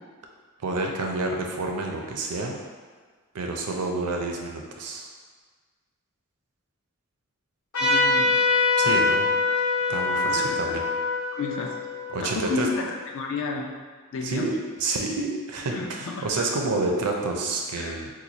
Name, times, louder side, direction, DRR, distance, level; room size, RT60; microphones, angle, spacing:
voice 1, 0.6-2.6 3.3-5.1 8.8-9.3 9.9-10.8 12.1-12.7 14.2-18.1, right 3 dB, 90° right, 1 dB, 0.5 m, -29 dB
Trumpet, 7.7-12.8, left 3 dB, 80° left, 1.0 m, -24 dB
voice 2, 7.8-8.4 8.8-8.9 10.3-10.8 11.3-11.7 12.2-12.9 13.1-13.7 14.1-14.5 15.7-16.5 17.7-18.1, left 4 dB, 60° left, 0 dB, 0.5 m, -32 dB
3.0 x 2.3 x 3.9 m, 1.5 s
head